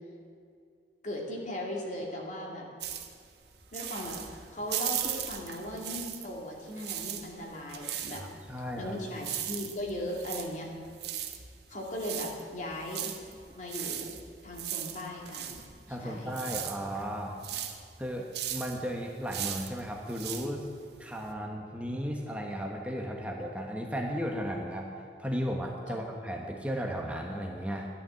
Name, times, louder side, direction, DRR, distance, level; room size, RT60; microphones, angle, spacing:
voice 1, 1.0-2.7 3.7-4.3 4.5-8.2 8.8-10.7 11.7-13.1 13.5-14.2 14.4-15.6 15.9-16.3 25.9-26.0, left 1 dB, 45° left, -1 dB, 2.5 m, -38 dB
sound 1, 2.8-6.4 6.7-21.3, right 10 dB, 70° right, 1.3 m, -38 dB
voice 2, 8.1-9.0 15.9-17.4 18.0-20.7 21.0-24.9 25.2-27.9, equal, 10° right, 0 dB, 1.2 m, -35 dB
12.5 x 11.5 x 7.7 m, 2.4 s
head